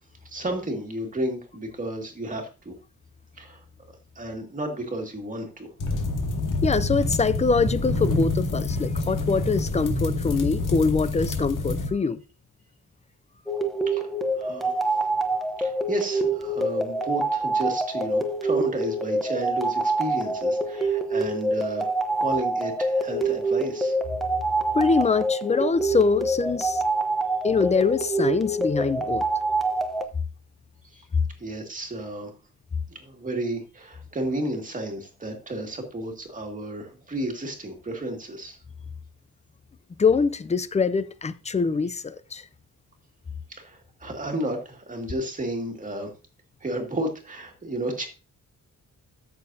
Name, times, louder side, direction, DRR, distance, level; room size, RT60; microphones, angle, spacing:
voice 1, 0.2-2.7 3.4-3.6 4.2-5.7 13.9-14.1 14.3-14.8 15.6-24.0 31.4-32.3 32.9-38.6 43.5-46.1 46.6-48.1, right 1 dB, 25° right, 2.0 m, -32 dB
sound 1, 5.8-11.9, left 2 dB, 70° left, 2.0 m, -27 dB
voice 2, 6.6-12.2 24.7-26.8 27.4-29.3 31.1-31.2 40.0-42.4, left 4 dB, 20° left, 0.4 m, -24 dB
sound 2, 13.5-30.0, right 2 dB, ahead, 0.8 m, -26 dB
13.5 x 6.8 x 2.7 m
wide cardioid pair, 170°, 33 cm